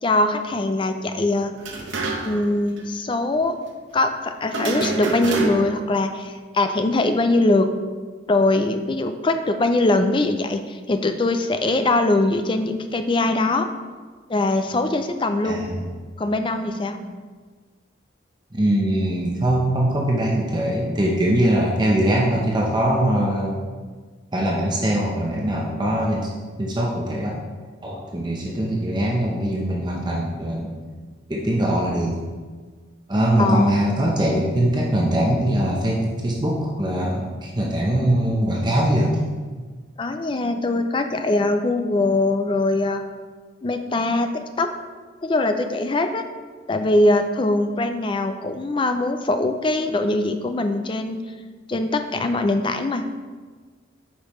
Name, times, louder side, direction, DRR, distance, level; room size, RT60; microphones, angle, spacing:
voice 1, 0.0-1.5 2.2-3.6 3.9-7.7 8.3-13.7 14.3-15.6 16.2-17.2 33.4-33.7 40.0-43.0 43.6-44.3 44.6-44.7 45.2-46.2 46.7-51.2 51.7-53.0, left 2 dB, 25° left, 7 dB, 0.4 m, -22 dB
sound 1, 1.6-2.5 2.8-2.9 4.5-5.9, right 3 dB, 75° right, 0.9 m, -26 dB
voice 2, 15.4-15.9 18.5-23.5 24.3-26.3 26.6-27.4 27.8-30.7 31.3-32.2 33.1-39.2, right 1 dB, 25° right, -3 dB, 0.7 m, -22 dB
8.4 x 5.4 x 3.1 m, 1.4 s
head